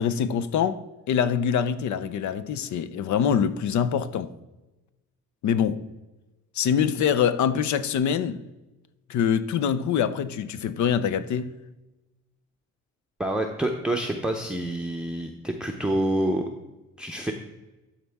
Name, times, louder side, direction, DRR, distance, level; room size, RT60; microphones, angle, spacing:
voice 1, 0.0-4.3 5.4-5.9 6.5-8.4 9.1-11.6, left 8 dB, 70° left, 0.6 m, -24 dB
voice 2, 13.2-16.4 17.0-17.3, right 1 dB, 5° right, 0.7 m, -27 dB
12.5 x 4.3 x 3.5 m
cardioid pair, 90°, 30 cm